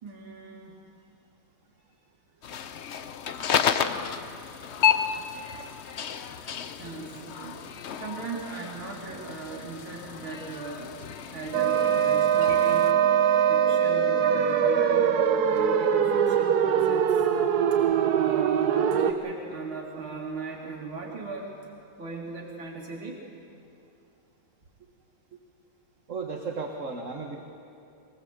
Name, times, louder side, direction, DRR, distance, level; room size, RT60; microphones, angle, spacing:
voice 1, 0.0-0.8 4.8-4.9 6.8-7.7 7.9-11.0 11.3-13.0 13.5-17.3 17.7-17.8 18.1-21.6 22.0-23.3, right 4 dB, 80° right, -3 dB, 3.0 m, -39 dB
sound 1, 2.4-12.9, left 8 dB, 80° left, 0.6 m, -31 dB
sound 2, 11.5-19.1, right 8 dB, 60° right, 1.3 m, -22 dB
voice 2, 26.1-27.4, right 4 dB, 45° right, 3 dB, 1.5 m, -34 dB
23.5 x 17.5 x 8.0 m, 2.7 s
omnidirectional pair, 2.2 m